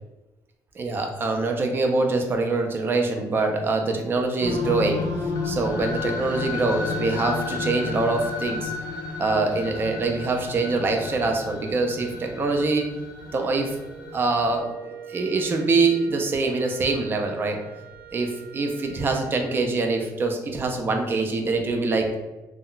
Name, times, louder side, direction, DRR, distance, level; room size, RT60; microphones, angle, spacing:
voice 1, 0.8-5.0 5.4-8.7 9.2-12.9 13.3-13.8 14.1-17.6 18.1-22.1, right 3 dB, 30° right, 3 dB, 0.4 m, -24 dB
sound 1, 4.4-14.5, left 3 dB, 60° left, 0.6 m, -32 dB
Wind instrument woodwind instrument, 13.2-19.6, right 10 dB, 75° right, 0.8 m, -45 dB
2.2 x 2.1 x 3.7 m, 1.0 s
cardioid pair, 170°, 8 cm